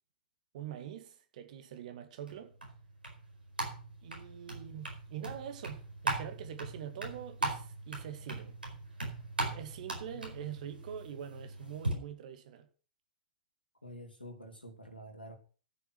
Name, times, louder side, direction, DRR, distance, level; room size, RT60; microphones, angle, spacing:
voice 1, 0.5-2.5 4.0-8.6 9.5-12.7, right 10 dB, 50° right, 2.1 m, -44 dB
sound 1, 2.3-11.9, right 2 dB, 85° right, 4.5 m, -39 dB
voice 2, 13.8-15.4, equal, 90° left, 3.2 m, -48 dB
14.0 x 6.8 x 6.2 m
figure-of-eight pair, 110°, 5 cm